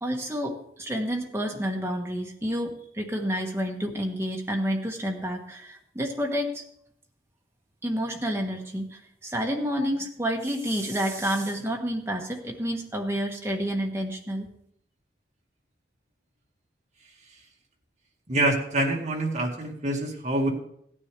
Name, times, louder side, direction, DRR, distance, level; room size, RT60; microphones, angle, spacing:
voice 1, 0.0-6.6 7.8-14.5, equal, 15° right, 1 dB, 1.3 m, -29 dB
voice 2, 18.3-20.5, right 1 dB, 40° right, 0 dB, 1.9 m, -26 dB
16.0 x 9.8 x 3.3 m, 0.69 s
head